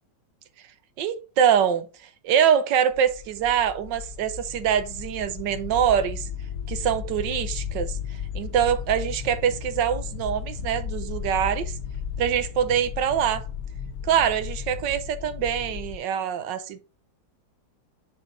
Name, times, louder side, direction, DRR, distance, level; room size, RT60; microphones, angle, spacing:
voice 1, 1.0-1.9 2.2-6.3 6.7-8.0 8.3-11.7 12.2-13.5 14.0-16.8, right 8 dB, 80° right, 1.4 m, -24 dB
sound 1, 2.9-16.0, left 7 dB, 65° left, 1.1 m, -34 dB
6.4 x 4.6 x 3.8 m
omnidirectional pair, 1.9 m